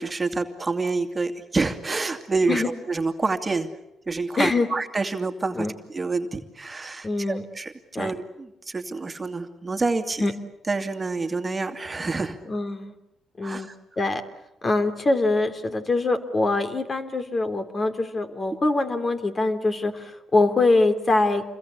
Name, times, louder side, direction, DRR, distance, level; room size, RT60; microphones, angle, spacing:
voice 1, 0.0-3.7 4.1-10.2 10.7-12.4 13.4-13.7, right 3 dB, 25° right, 6 dB, 2.5 m, -28 dB
voice 2, 7.0-7.4 7.9-8.1 10.2-10.3 12.5-12.9 13.4-13.7 14.0-14.2 14.6-21.4, left 2 dB, 30° left, 8 dB, 3.3 m, -23 dB
28.5 x 22.0 x 8.5 m, 0.90 s
cardioid pair, 90°, 0 cm